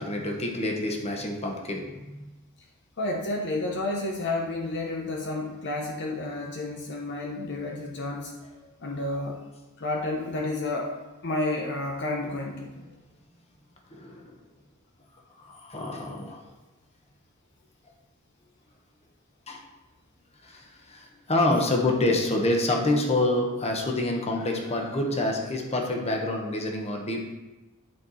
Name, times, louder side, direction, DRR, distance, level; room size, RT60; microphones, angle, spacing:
voice 1, 0.0-2.3 13.9-14.4 15.4-16.4 19.5-19.6 20.4-27.3, left 2 dB, 30° left, 1 dB, 1.2 m, -27 dB
voice 2, 3.0-8.4 8.8-9.4 9.8-10.9 11.2-12.9, left 2 dB, 55° left, 1 dB, 0.9 m, -30 dB
10.5 x 4.5 x 4.1 m, 1.1 s
head